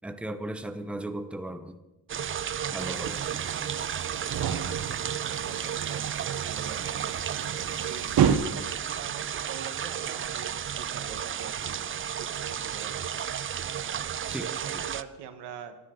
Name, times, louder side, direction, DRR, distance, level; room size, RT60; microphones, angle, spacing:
voice 1, 0.0-1.8 2.7-3.2 14.3-14.5 14.7-14.8, right 1 dB, 5° right, 9 dB, 0.8 m, -36 dB
sound 1, 2.1-15.0, right 9 dB, 30° right, 0.5 m, -33 dB
voice 2, 2.6-5.0 5.2-7.1 7.8-11.9 12.2-13.1 13.7-14.1 14.4-15.8, right 8 dB, 90° right, 8 dB, 1.5 m, -45 dB
sound 2, 2.8-8.4, right 8 dB, 60° right, 1.2 m, -31 dB
25.0 x 10.0 x 3.9 m, 1.0 s
cardioid pair, 100°, 40 cm